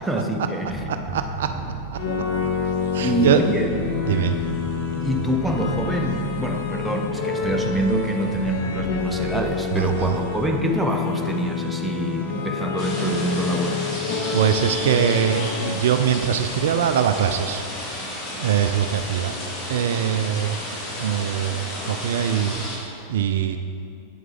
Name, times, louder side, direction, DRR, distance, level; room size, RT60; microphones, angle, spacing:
voice 1, 0.0-0.8 3.0-3.7 5.0-13.9, right 1 dB, 5° right, 2 dB, 0.8 m, -25 dB
sound 1, 0.6-10.8, right 4 dB, 35° right, 2.0 m, -35 dB
voice 2, 0.9-1.5 1.9-2.0 2.9-3.4 4.1-4.3 9.7-10.2 14.3-17.6 18.4-19.3 19.7-20.6 21.0-23.6, right 9 dB, 60° right, 8 dB, 0.3 m, -22 dB
sound 2, 1.9-15.6, left 6 dB, 50° left, 1.0 m, -28 dB
sound 3, 12.8-22.8, left 1 dB, 30° left, 2.0 m, -32 dB
8.7 x 7.8 x 3.8 m, 2.5 s
figure-of-eight pair, 90°, 0 cm